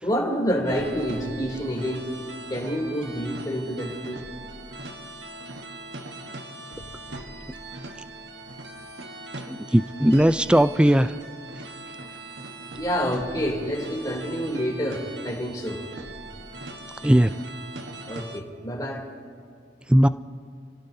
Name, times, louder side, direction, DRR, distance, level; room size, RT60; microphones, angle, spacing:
voice 1, 0.0-2.0 2.5-4.2 12.7-15.8 18.1-19.0, equal, 20° left, -2 dB, 3.1 m, -28 dB
sound 1, 0.7-18.4, right 2 dB, 75° right, 1.4 m, -40 dB
voice 2, 9.5-11.1 17.0-17.3 19.9-20.1, equal, 5° right, 13 dB, 0.3 m, -18 dB
30.0 x 17.0 x 2.8 m, 2.4 s
head